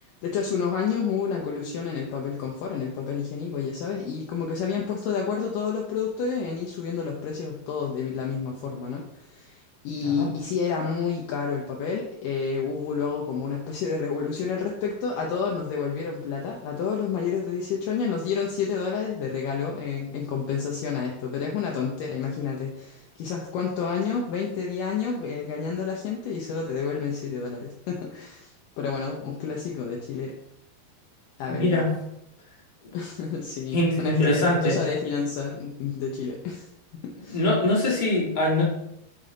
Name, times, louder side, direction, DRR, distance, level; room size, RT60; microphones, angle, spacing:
voice 1, 0.2-30.3 31.4-31.8 32.9-36.7 37.0-37.4, left 6 dB, 75° left, -1 dB, 2.2 m, -30 dB
voice 2, 31.5-31.9 33.7-34.8 37.3-38.6, left 1 dB, 45° left, -5 dB, 0.6 m, -23 dB
6.8 x 5.4 x 3.7 m, 0.80 s
omnidirectional pair, 4.3 m